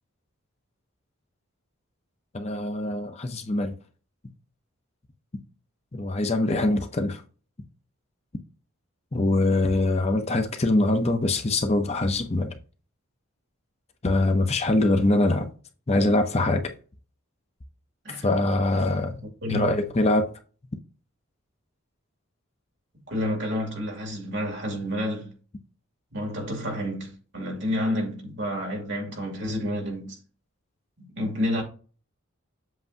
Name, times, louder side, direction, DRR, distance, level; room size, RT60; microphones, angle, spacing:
voice 1, 2.3-3.8 5.9-7.2 9.1-12.5 14.0-15.5 15.9-16.7 18.2-19.2 19.5-20.3, left 2 dB, 30° left, 0.6 m, -23 dB
voice 2, 19.4-19.7 23.1-25.3 26.1-30.2 31.0-31.6, left 1 dB, 55° right, 2.7 m, -29 dB
7.8 x 5.8 x 2.7 m
head